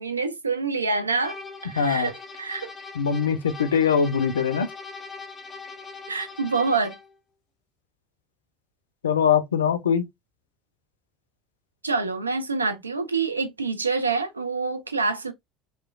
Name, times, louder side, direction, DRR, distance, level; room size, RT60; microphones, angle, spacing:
voice 1, 0.0-1.4 1.6-2.7 6.1-7.0 11.8-15.3, right 4 dB, 85° right, 0.3 m, -26 dB
sound 1, 1.2-7.2, left 4 dB, 25° left, 0.7 m, -41 dB
voice 2, 1.8-2.1 3.0-4.7 9.0-10.1, left 7 dB, 80° left, 0.4 m, -22 dB
2.9 x 2.1 x 2.4 m
figure-of-eight pair, 65°, 0 cm